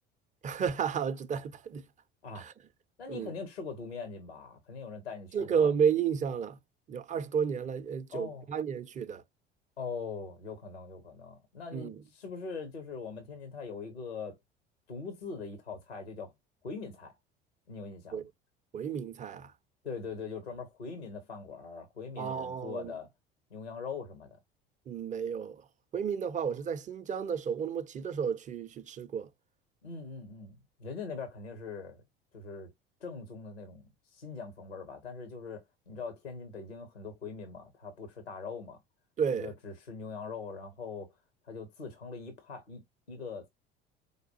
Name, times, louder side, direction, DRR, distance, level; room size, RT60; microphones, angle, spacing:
voice 1, 0.4-1.9 2.4-2.5 3.1-3.3 5.3-6.6 6.9-9.2 11.7-12.0 18.1-18.3 18.7-19.5 22.2-22.9 24.9-25.6 25.9-29.3 39.2-39.5, right 7 dB, 25° right, 0.5 m, -32 dB
voice 2, 3.0-5.7 8.1-8.5 9.8-14.4 14.9-16.3 16.6-17.1 17.7-18.3 19.8-23.1 23.5-24.4 29.8-32.0 32.3-32.7 33.0-38.8 39.3-41.1 41.5-42.8 43.1-43.5, left 5 dB, 85° left, 0.9 m, -42 dB
4.9 x 2.2 x 2.6 m
figure-of-eight pair, 65°, 31 cm